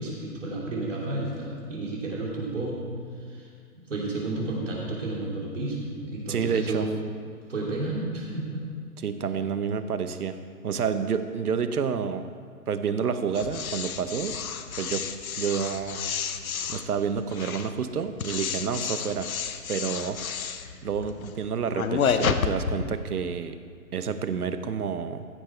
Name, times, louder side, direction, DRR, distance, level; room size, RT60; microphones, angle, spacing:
voice 1, 0.0-2.8 3.2-3.5 3.7-7.0 7.5-8.6, right 2 dB, 55° right, -3 dB, 3.0 m, -31 dB
voice 2, 6.3-6.9 9.0-10.4 10.6-12.3 12.7-14.4 14.8-15.1 15.4-16.0 16.4-19.3 19.7-20.2 20.8-23.6 23.9-25.3, right 6 dB, 75° right, 10 dB, 1.0 m, -29 dB
sound 1, 13.3-22.9, left 6 dB, 65° left, 0.8 m, -31 dB
15.0 x 7.5 x 4.4 m, 2.1 s
hypercardioid pair, 175°, 45 cm